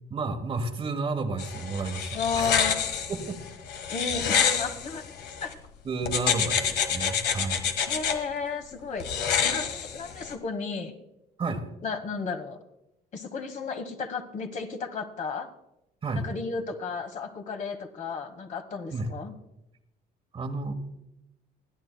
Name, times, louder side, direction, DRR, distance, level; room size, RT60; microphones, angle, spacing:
voice 1, 0.1-2.5 3.1-3.4 5.8-7.7 11.4-11.7 16.0-16.3 18.9-19.1 20.3-20.7, right 3 dB, 35° right, 7 dB, 1.3 m, -31 dB
sound 1, 1.4-5.5 6.1-8.2 9.0-10.3, left 7 dB, 75° left, 1.6 m, -28 dB
voice 2, 2.1-2.9 3.9-5.0 5.4-5.6 7.9-9.1 9.4-10.9 11.8-12.6 13.1-15.5 16.2-19.3, left 5 dB, 45° left, 6 dB, 1.4 m, -33 dB
29.5 x 10.0 x 2.3 m, 0.90 s
cardioid pair, 110°, 17 cm